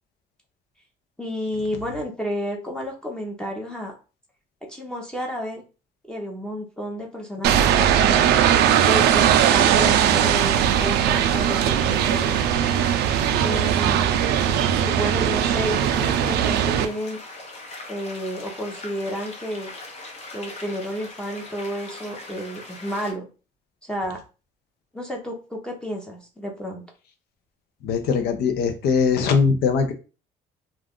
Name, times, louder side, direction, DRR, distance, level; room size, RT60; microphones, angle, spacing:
voice 1, 1.2-3.9 4.7-5.6 6.1-8.2 8.9-12.3 13.4-14.1 14.8-17.2 17.9-19.7 20.3-23.3 23.9-24.2 24.9-26.8, equal, 5° left, -1 dB, 0.7 m, -31 dB
sound 1, 7.4-16.9, right 9 dB, 75° right, 0.4 m, -19 dB
sound 2, 9.7-23.1, left 2 dB, 40° left, 0.9 m, -41 dB
voice 2, 27.8-29.9, left 5 dB, 70° left, 8 dB, 0.7 m, -21 dB
2.4 x 2.3 x 3.5 m, 0.33 s
cardioid pair, 110°, 17 cm